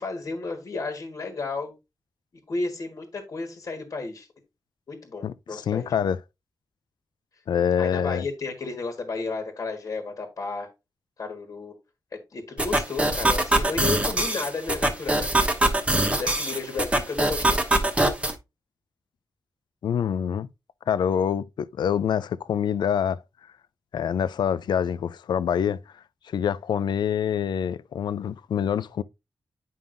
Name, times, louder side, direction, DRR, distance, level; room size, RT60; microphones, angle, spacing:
voice 1, 0.0-1.7 2.5-4.3 4.9-5.9 7.8-10.7 11.2-11.7 12.3-15.6 16.2-17.6, left 3 dB, 50° left, 1.6 m, -33 dB
voice 2, 5.2-6.2 7.5-8.3 19.8-20.5 20.9-23.2 23.9-25.8 26.2-29.0, left 8 dB, 85° left, 0.4 m, -26 dB
sound 1, 12.6-18.3, right 1 dB, 15° right, 1.1 m, -23 dB
9.5 x 5.4 x 2.6 m
wide cardioid pair, 115°, 7 cm